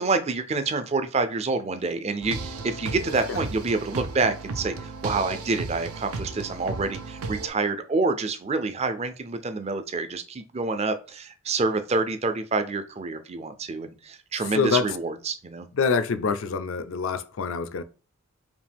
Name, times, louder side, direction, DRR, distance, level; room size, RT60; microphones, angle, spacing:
voice 1, 0.0-15.7, right 3 dB, 30° right, 0.4 m, -27 dB
sound 1, 2.2-7.5, right 3 dB, 85° right, 0.5 m, -35 dB
voice 2, 14.5-14.9 15.8-17.8, left 5 dB, 65° left, 0.4 m, -25 dB
5.1 x 2.5 x 3.4 m
head